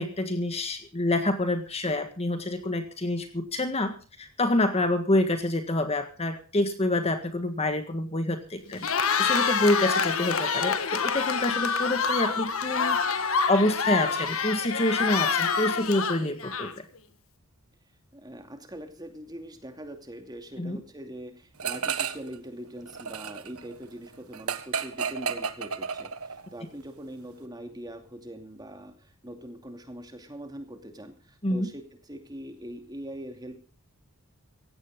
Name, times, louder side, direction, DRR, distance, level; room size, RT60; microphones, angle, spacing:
voice 1, 0.0-16.8 20.6-20.8 31.4-31.7, left 1 dB, 30° left, 8 dB, 1.7 m, -27 dB
Cheering, 8.7-17.0, left 5 dB, 70° left, 1.5 m, -27 dB
voice 2, 18.1-33.6, right 1 dB, 20° right, 5 dB, 2.6 m, -42 dB
sound 1, 21.6-22.3 22.6-26.5, right 6 dB, 85° right, 1.4 m, -32 dB
17.0 x 16.0 x 3.8 m, 0.35 s
head